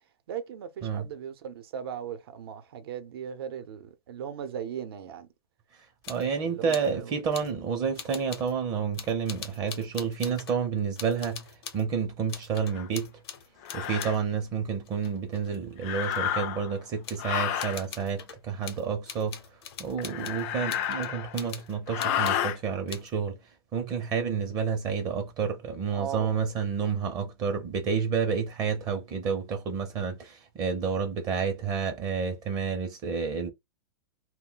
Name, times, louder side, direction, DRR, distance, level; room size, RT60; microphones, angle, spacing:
voice 1, 0.3-5.3 6.3-7.1 25.9-26.4, right 8 dB, 70° right, 0.7 m, -38 dB
sound 1, 6.0-6.3 6.7-6.9 7.3-7.6 8.0-8.5 8.9-10.6 11.0-11.9 12.3-14.3 14.9-16.3 17.0-17.3 17.6-22.5 22.9-23.1, left 7 dB, 75° left, 0.7 m, -43 dB
voice 2, 6.1-13.1 13.7-19.4 19.8-23.4 23.7-33.5, right 6 dB, 30° right, 0.6 m, -30 dB
sound 2, 12.7-12.9 13.6-14.2 15.8-16.7 17.2-17.8 20.0-21.4 21.9-22.6, left 10 dB, 40° left, 0.3 m, -30 dB
2.2 x 2.2 x 3.7 m
supercardioid pair, 145°, 13 cm